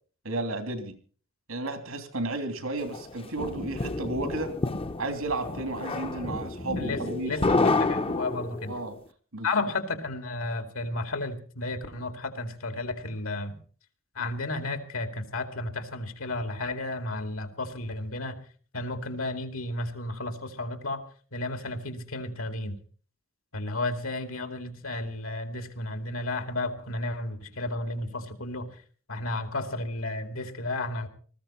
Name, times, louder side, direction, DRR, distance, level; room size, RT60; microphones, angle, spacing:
voice 1, 0.2-0.9 1.5-4.5 5.0-7.8 8.7-9.0 9.3-9.5, right 2 dB, 90° right, 8 dB, 3.1 m, -33 dB
sound 1, 2.9-8.8, left 3 dB, 25° left, 0.7 m, -29 dB
voice 2, 6.8-8.7 9.4-13.6 14.1-18.4 18.7-21.0 21.3-22.8 23.5-28.8 29.1-31.1, left 2 dB, 80° left, 8 dB, 2.4 m, -33 dB
20.0 x 14.5 x 4.3 m, 0.42 s
head